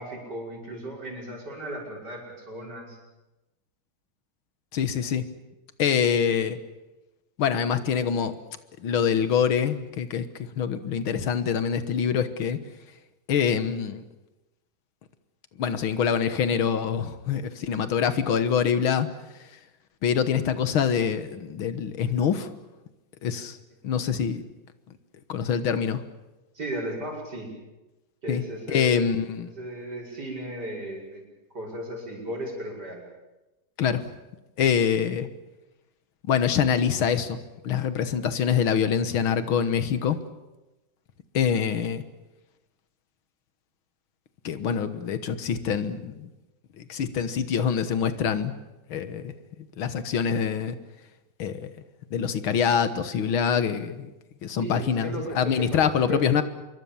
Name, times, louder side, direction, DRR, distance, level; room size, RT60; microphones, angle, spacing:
voice 1, 0.0-3.0 26.5-27.5 28.2-29.1 29.6-31.2 31.5-33.0 54.6-56.2, right 1 dB, 55° right, -1 dB, 6.5 m, -35 dB
voice 2, 4.7-5.3 5.8-6.6 7.4-8.3 8.8-10.3 10.6-12.6 13.3-14.0 15.6-19.1 20.0-22.5 23.2-23.6 23.8-24.4 25.3-26.0 28.3-28.4 28.7-29.5 33.8-34.0 34.6-35.3 36.3-37.4 37.6-40.2 41.3-42.0 44.4-46.3 46.8-48.5 48.9-49.3 49.8-50.8 51.4-51.7 52.1-54.1 54.4-56.4, left 7 dB, 90° left, 11 dB, 2.2 m, -25 dB
25.5 x 23.0 x 7.2 m, 1.0 s
omnidirectional pair, 2.2 m